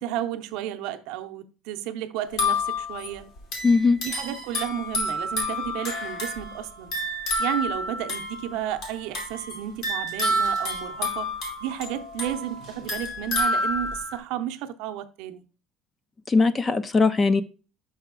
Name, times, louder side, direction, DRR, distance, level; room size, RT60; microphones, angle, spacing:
voice 1, 0.0-3.3 4.0-7.0 7.4-11.3 11.6-15.4, right 11 dB, 75° right, 0.6 m, -32 dB
sound 1, 2.3-14.2, left 1 dB, 65° left, 2.8 m, -29 dB
voice 2, 3.6-4.0 16.3-17.4, left 4 dB, 20° left, 0.4 m, -20 dB
5.6 x 5.5 x 3.7 m
cardioid pair, 150°, 0 cm